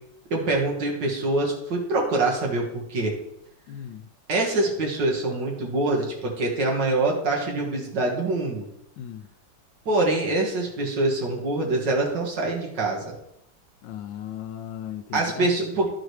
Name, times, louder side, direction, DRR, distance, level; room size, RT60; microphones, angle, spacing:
voice 1, 0.3-3.1 4.3-8.7 9.9-13.2 15.1-15.9, right 2 dB, 70° right, -1 dB, 2.3 m, -25 dB
voice 2, 3.7-4.1 9.0-9.3 13.8-15.5, left 10 dB, 85° left, 6 dB, 1.3 m, -36 dB
14.0 x 5.0 x 3.2 m, 0.80 s
omnidirectional pair, 2.0 m